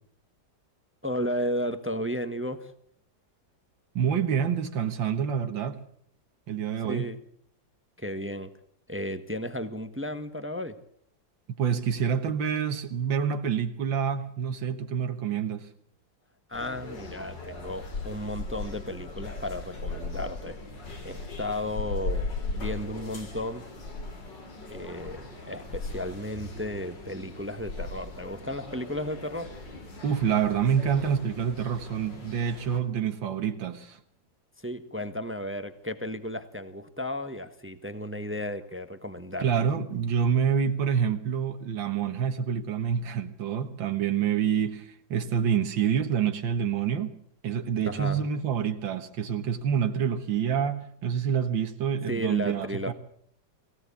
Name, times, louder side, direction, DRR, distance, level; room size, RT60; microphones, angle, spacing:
voice 1, 1.0-2.7 6.8-7.2 8.0-8.5 8.9-10.8 16.5-20.6 21.0-23.7 24.7-29.5 34.6-39.5 47.8-48.3 52.1-52.9, left 1 dB, 10° right, 1.1 m, -34 dB
voice 2, 4.0-5.8 6.5-7.1 11.6-15.7 30.0-34.0 39.4-47.2 47.4-52.9, right 7 dB, 90° right, 2.1 m, -27 dB
sound 1, 16.5-32.8, left 3 dB, 70° left, 4.1 m, -38 dB
22.5 x 16.5 x 8.5 m
omnidirectional pair, 2.0 m